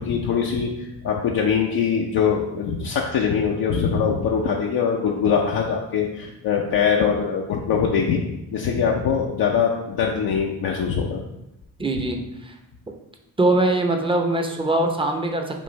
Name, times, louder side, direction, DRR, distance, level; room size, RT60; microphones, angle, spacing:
voice 1, 0.0-8.2 8.5-11.2, left 6 dB, 60° left, -1 dB, 0.6 m, -22 dB
voice 2, 11.8-12.5 13.4-15.6, right 2 dB, 15° right, 3 dB, 0.7 m, -22 dB
5.1 x 2.5 x 3.2 m, 0.90 s
hypercardioid pair, 45°, 41 cm